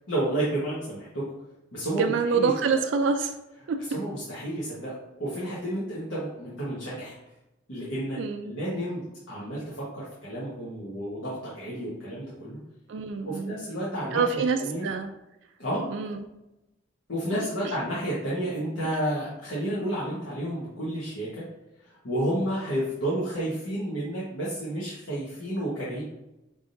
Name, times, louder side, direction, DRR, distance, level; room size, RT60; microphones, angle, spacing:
voice 1, 0.1-1.2 1.7-2.5 3.9-7.2 7.7-8.2 8.4-9.0 9.3-12.6 13.2-14.9 15.6-15.9 17.1-21.4 22.0-26.0, right 1 dB, 80° left, -8 dB, 1.2 m, -31 dB
voice 2, 1.9-3.4 3.7-3.8 8.2-8.5 12.9-13.5 14.1-15.1 15.9-16.2 17.3-17.4, right 5 dB, 70° right, 6 dB, 0.3 m, -26 dB
5.4 x 3.5 x 2.6 m, 0.95 s
head